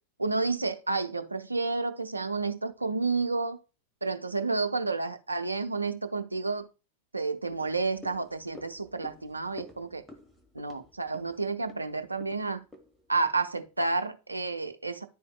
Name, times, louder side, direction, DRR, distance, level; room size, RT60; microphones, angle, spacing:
voice 1, 0.2-3.6 4.0-6.7 7.1-10.0 10.5-12.6 13.1-15.0, right 3 dB, 80° right, 0.6 m, -30 dB
sound 1, 7.5-14.0 14.3-14.4, left 1 dB, 5° left, 1.2 m, -51 dB
10.5 x 4.2 x 2.2 m
figure-of-eight pair, 90°, 0 cm